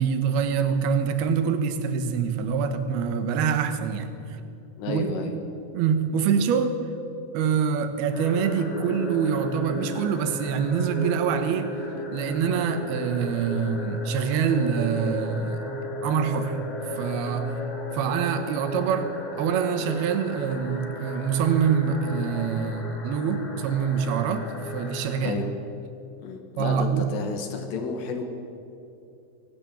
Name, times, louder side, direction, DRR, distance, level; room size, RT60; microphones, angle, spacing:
voice 1, 0.0-4.4 4.9-5.1 5.7-6.8 7.3-11.7 12.1-15.6 16.0-16.6 17.0-17.6 17.9-24.5 24.7-25.4 26.6-27.1, right 6 dB, 70° right, 9 dB, 3.1 m, -25 dB
voice 2, 4.8-5.3 25.2-25.5 26.2-28.2, left 5 dB, 75° left, 5 dB, 3.9 m, -31 dB
sound 1, 8.1-25.2, left 1 dB, 50° left, 4.7 m, -36 dB
23.5 x 18.5 x 7.0 m, 2.7 s
omnidirectional pair, 5.0 m